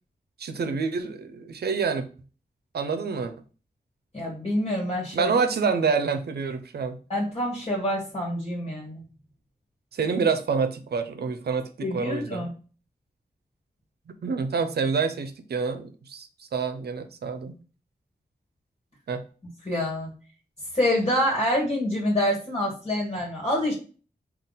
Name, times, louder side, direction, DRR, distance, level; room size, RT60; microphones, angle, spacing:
voice 1, 0.4-2.1 2.7-3.3 5.1-7.0 9.9-12.5 14.2-17.5 19.1-19.2, right 5 dB, 75° right, 7 dB, 0.5 m, -27 dB
voice 2, 4.1-5.3 7.1-9.0 11.8-12.5 19.6-20.1 20.7-23.7, left 1 dB, 35° left, -3 dB, 1.4 m, -26 dB
3.7 x 2.3 x 3.8 m, 0.37 s
cardioid pair, 50°, 17 cm